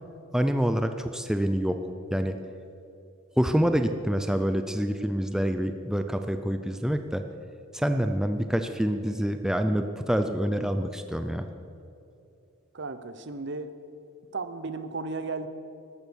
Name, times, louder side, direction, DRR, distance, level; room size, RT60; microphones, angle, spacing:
voice 1, 0.3-1.8 2.1-2.4 3.4-7.2 7.7-11.5, equal, 5° right, 7 dB, 0.5 m, -26 dB
voice 2, 12.7-13.7 14.3-15.5, right 3 dB, 55° right, 11 dB, 0.9 m, -34 dB
14.0 x 12.5 x 6.3 m, 2.7 s
head